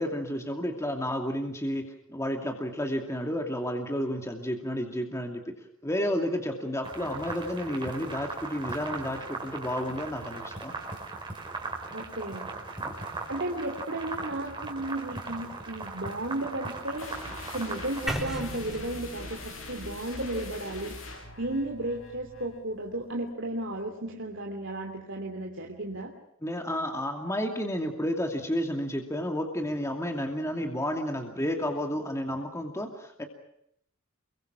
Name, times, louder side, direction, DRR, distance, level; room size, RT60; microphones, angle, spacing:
voice 1, 0.0-5.4 5.8-10.8 12.8-12.9 26.4-33.3, equal, 15° left, 3 dB, 2.6 m, -31 dB
sound 1, 6.8-18.1, right 3 dB, 25° right, 5.0 m, -38 dB
voice 2, 11.9-12.5 13.3-17.1 17.5-21.0 21.4-26.1, right 1 dB, 60° right, 1 dB, 3.1 m, -34 dB
sound 2, 17.0-22.6, left 2 dB, 75° left, 7.8 m, -42 dB
sound 3, 18.1-22.0, equal, ahead, 5.1 m, -39 dB
29.5 x 23.5 x 6.0 m, 0.74 s
head